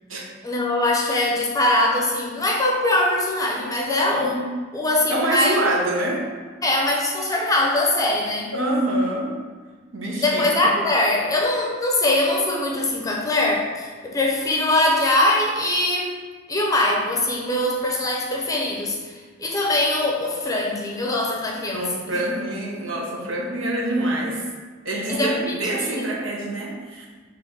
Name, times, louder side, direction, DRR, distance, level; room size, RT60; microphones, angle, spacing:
voice 1, 0.4-4.3 4.7-5.6 6.6-8.5 10.2-16.1 16.5-21.8 25.1-25.5 25.9-26.1, left 1 dB, 15° left, -1 dB, 0.6 m, -22 dB
voice 2, 3.9-4.5 5.1-6.2 8.5-9.3 9.9-10.7 21.7-24.4 24.8-27.1, right 1 dB, 75° right, -3 dB, 0.8 m, -26 dB
3.7 x 3.0 x 3.8 m, 1.4 s
head